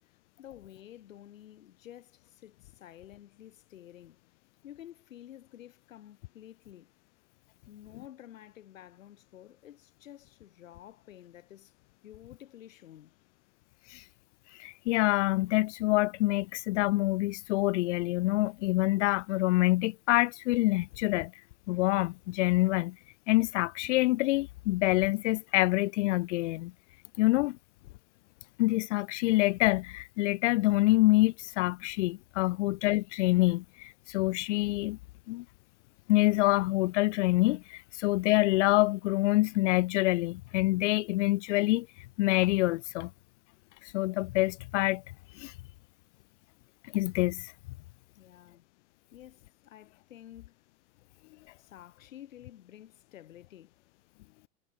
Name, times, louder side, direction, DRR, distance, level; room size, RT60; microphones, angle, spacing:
voice 1, 0.0-4.2 4.6-6.9 7.7-11.7 12.0-13.2 48.1-48.7 49.1-50.6 51.6-53.8, left 12 dB, 85° left, 4.1 m, -51 dB
voice 2, 14.6-21.3 21.7-23.0 23.3-26.7 27.2-27.6 28.6-35.0 35.3-35.4 36.1-41.9 42.2-43.1 43.9-45.0 45.4-45.5 46.9-47.5, left 19 dB, 65° left, 0.7 m, -26 dB
supercardioid pair, 140°, 39 cm